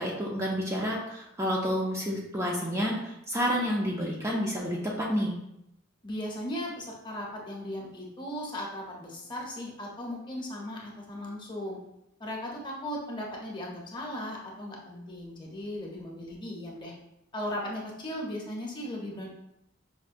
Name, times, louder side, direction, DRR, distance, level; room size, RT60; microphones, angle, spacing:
voice 1, 0.0-5.3, equal, 15° right, -3 dB, 0.4 m, -29 dB
voice 2, 6.0-11.8 12.2-16.9 17.3-19.3, left 1 dB, 25° left, -2 dB, 0.7 m, -37 dB
5.1 x 2.1 x 2.5 m, 0.81 s
head